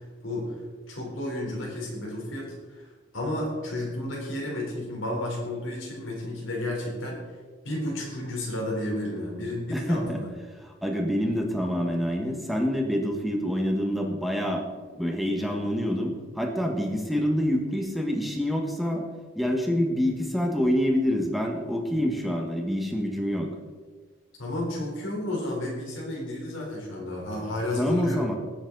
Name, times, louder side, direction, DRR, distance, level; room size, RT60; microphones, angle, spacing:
voice 1, 0.2-0.5 0.9-2.9 3.1-7.2 7.6-10.3 24.4-28.2, left 1 dB, 80° left, -3 dB, 4.0 m, -32 dB
voice 2, 9.7-10.2 10.6-14.6 15.0-19.0 19.3-23.5 27.8-28.3, equal, ahead, 1 dB, 1.5 m, -26 dB
18.5 x 7.3 x 4.0 m, 1.4 s
head